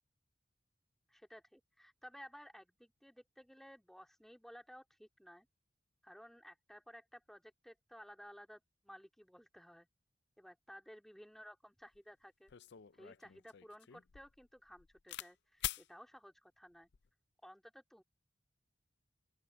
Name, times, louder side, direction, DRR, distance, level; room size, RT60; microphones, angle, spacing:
voice 1, 1.1-5.5 6.0-9.9 10.4-12.5 13.0-16.9 17.4-18.0, equal, ahead, 2.8 m, -56 dB
sound 1, 11.9-12.0 12.5-15.3 15.6-15.9 16.7-17.1, left 13 dB, 60° left, 0.5 m, -45 dB
open air
head